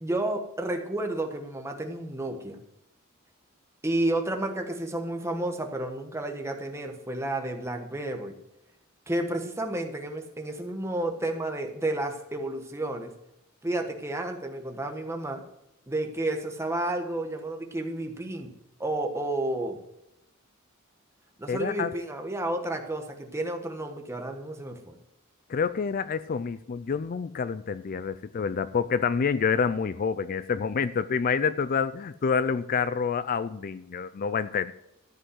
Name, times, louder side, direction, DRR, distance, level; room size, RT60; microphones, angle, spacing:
voice 1, 0.0-2.6 3.8-8.4 9.1-13.1 13.6-15.4 15.9-18.5 18.8-19.8 21.4-25.0, right 1 dB, 15° right, 4 dB, 1.3 m, -31 dB
voice 2, 21.5-21.9 25.5-34.7, left 6 dB, 40° left, 14 dB, 0.4 m, -27 dB
13.5 x 5.4 x 7.8 m, 0.86 s
head